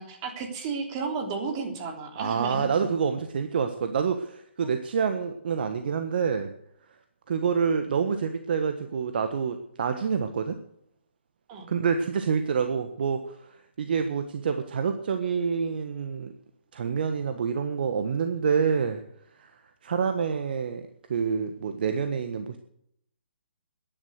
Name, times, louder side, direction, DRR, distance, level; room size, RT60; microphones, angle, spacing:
voice 1, 0.0-2.7 4.6-4.7 11.5-11.7, right 4 dB, 35° right, 3 dB, 3.5 m, -33 dB
voice 2, 2.1-6.5 7.3-10.6 11.7-16.3 16.7-19.0 19.3-20.8 21.1-22.6, right 6 dB, 55° right, 7 dB, 1.4 m, -27 dB
14.0 x 11.0 x 6.5 m, 0.70 s
figure-of-eight pair, 135°, 6 cm